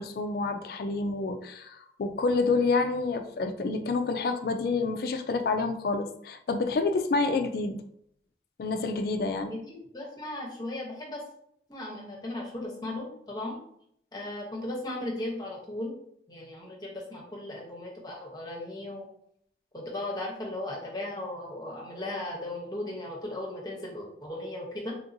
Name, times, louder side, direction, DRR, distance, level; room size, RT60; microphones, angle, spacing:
voice 1, 0.0-7.8 8.6-9.5, left 3 dB, 55° left, 7 dB, 0.3 m, -28 dB
voice 2, 9.5-11.2 11.7-13.6 14.1-16.0 16.3-19.1 19.7-24.9, left 1 dB, 25° left, -2 dB, 0.8 m, -36 dB
3.5 x 2.7 x 2.6 m, 0.70 s
head